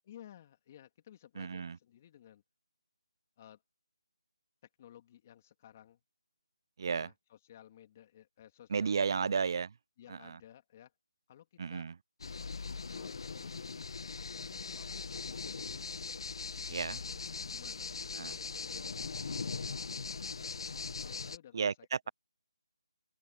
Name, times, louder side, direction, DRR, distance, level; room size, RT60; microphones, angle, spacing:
voice 1, 0.1-2.4 3.4-3.6 4.8-6.0 6.9-9.4 10.0-10.9 11.3-11.9 12.7-13.6 14.1-15.8 16.5-17.2 17.4-19.5 21.0-22.1, left 11 dB, 30° left, 3.0 m, -57 dB
voice 2, 1.4-1.8 6.8-7.1 8.7-9.7 10.1-10.4 11.6-11.9 16.7-17.0 18.1-18.3 21.5-22.1, right 6 dB, 50° right, 0.4 m, -33 dB
sound 1, 12.2-21.4, left 4 dB, 60° left, 1.2 m, -40 dB
open air
figure-of-eight pair, 165°, 3 cm